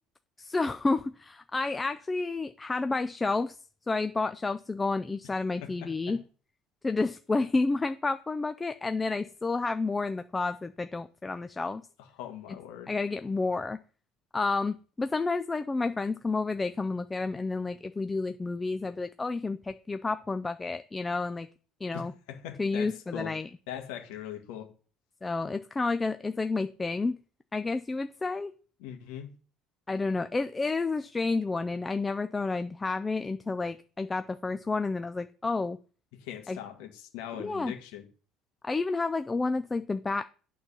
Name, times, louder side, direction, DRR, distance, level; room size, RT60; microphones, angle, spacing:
voice 1, 0.4-3.6 3.9-6.2 6.8-11.8 12.9-13.8 14.3-21.5 21.8-22.1 22.6-23.5 25.2-27.2 27.5-28.5 29.9-35.8 36.5-36.6 37.4-37.7 38.6-40.2, left 3 dB, 15° left, 0.4 m, -30 dB
voice 2, 5.6-6.2 12.1-12.9 21.9-24.7 28.8-29.3 36.1-38.1, left 10 dB, 90° left, 1.6 m, -41 dB
8.6 x 3.8 x 6.8 m
cardioid pair, 145°, 0 cm